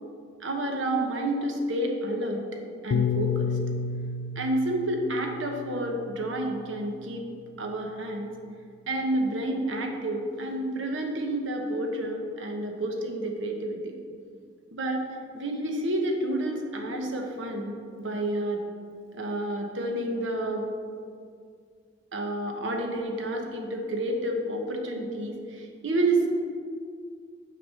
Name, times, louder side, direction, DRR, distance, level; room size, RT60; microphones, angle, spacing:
voice 1, 0.4-2.4 2.8-3.5 4.3-7.3 7.6-8.3 8.9-14.0 14.7-15.1 15.3-18.6 19.1-20.7 22.1-26.3, right 1 dB, 70° right, 2 dB, 1.0 m, -29 dB
Piano, 2.9-7.3, left 5 dB, 75° left, 0.3 m, -31 dB
6.3 x 5.0 x 6.2 m, 2.2 s
head